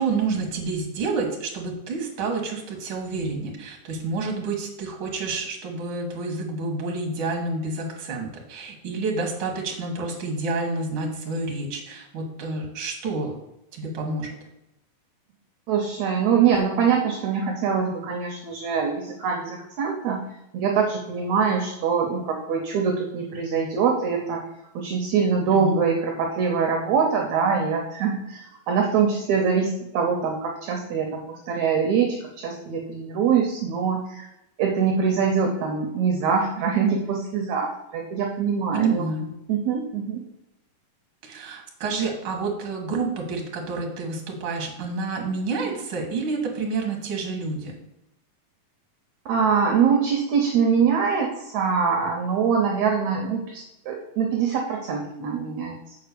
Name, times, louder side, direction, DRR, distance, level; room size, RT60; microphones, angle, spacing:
voice 1, 0.0-13.3 13.7-14.3 25.5-25.8 38.7-39.3 41.2-47.7, right 3 dB, 45° right, 1 dB, 2.2 m, -29 dB
voice 2, 15.7-20.2 20.5-24.4 24.7-34.3 34.6-39.1 39.5-40.2 49.3-56.0, right 6 dB, 70° right, 2 dB, 2.0 m, -24 dB
7.1 x 4.6 x 6.8 m, 0.89 s
omnidirectional pair, 3.9 m